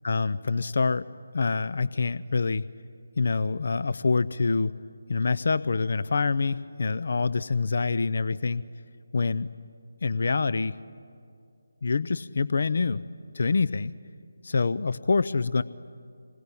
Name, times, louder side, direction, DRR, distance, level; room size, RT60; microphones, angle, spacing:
voice 1, 0.0-1.1 1.3-2.7 3.2-4.7 5.1-8.6 9.1-9.5 10.0-10.8 11.8-13.0 13.3-13.9 14.4-15.6, left 4 dB, 55° left, 16 dB, 0.6 m, -26 dB
27.5 x 21.5 x 9.9 m, 2.4 s
figure-of-eight pair, 155°, 0 cm